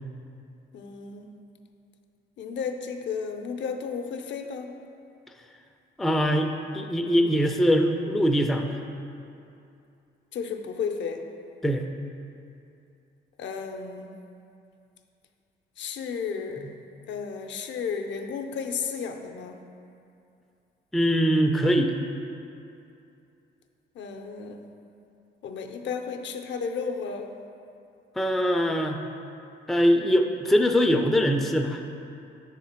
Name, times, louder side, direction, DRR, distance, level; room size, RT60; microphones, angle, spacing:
voice 1, 0.7-1.3 2.4-4.7 10.3-11.2 13.4-14.1 15.8-16.7 17.1-19.6 24.0-24.6 25.4-27.3, left 6 dB, 65° left, 5 dB, 0.5 m, -33 dB
voice 2, 6.0-8.8 11.6-11.9 20.9-21.9 28.2-29.0 29.7-31.8, equal, ahead, 3 dB, 0.3 m, -22 dB
6.5 x 3.6 x 4.3 m, 2.6 s
cardioid pair, 90°, 20 cm